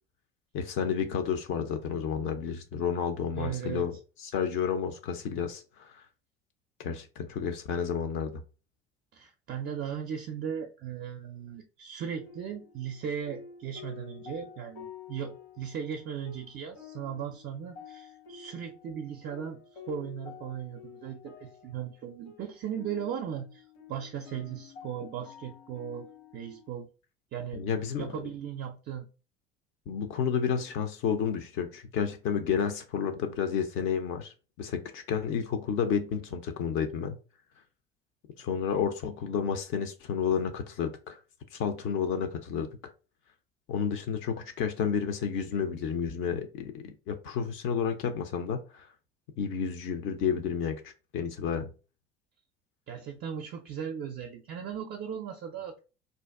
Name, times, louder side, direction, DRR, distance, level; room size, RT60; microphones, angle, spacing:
voice 1, 0.5-3.9 4.2-6.0 6.8-8.4 27.5-28.1 29.9-37.2 38.4-41.2 41.5-42.7 43.7-48.9 49.4-51.7, left 7 dB, 40° left, 0.5 m, -31 dB
voice 2, 3.4-4.0 9.1-19.6 19.9-26.1 26.3-26.9 27.3-27.7 28.0-29.1 52.9-55.8, right 8 dB, 30° right, 0.4 m, -37 dB
sound 1, 12.1-26.7, left 7 dB, 70° left, 1.0 m, -50 dB
2.5 x 2.2 x 3.3 m
figure-of-eight pair, 60°, 31 cm